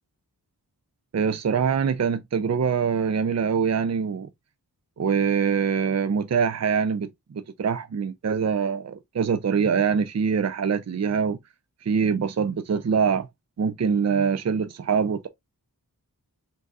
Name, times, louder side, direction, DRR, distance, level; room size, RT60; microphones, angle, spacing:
voice 1, 1.1-4.3 5.0-11.4 11.8-13.3 13.6-15.3, right 6 dB, 45° right, 0.5 m, -24 dB
3.9 x 3.8 x 2.3 m
cardioid pair, 40°, 39 cm